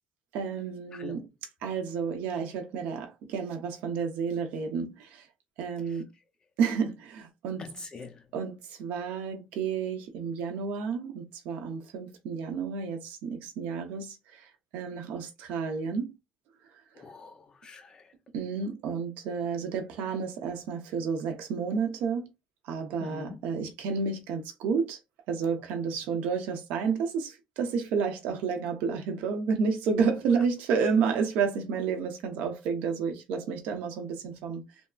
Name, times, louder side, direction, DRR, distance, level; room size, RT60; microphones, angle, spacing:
voice 1, 0.3-1.2 1.6-5.2 5.6-6.1 6.6-7.7 8.3-14.2 14.7-16.1 18.3-22.3 22.7-25.0 25.3-34.6, right 5 dB, 90° right, 0.8 m, -30 dB
voice 2, 0.9-1.2 7.6-8.2 17.0-18.0 23.0-23.4, left 4 dB, 30° left, 0.6 m, -43 dB
3.5 x 2.0 x 2.3 m
cardioid pair, 140°, 3 cm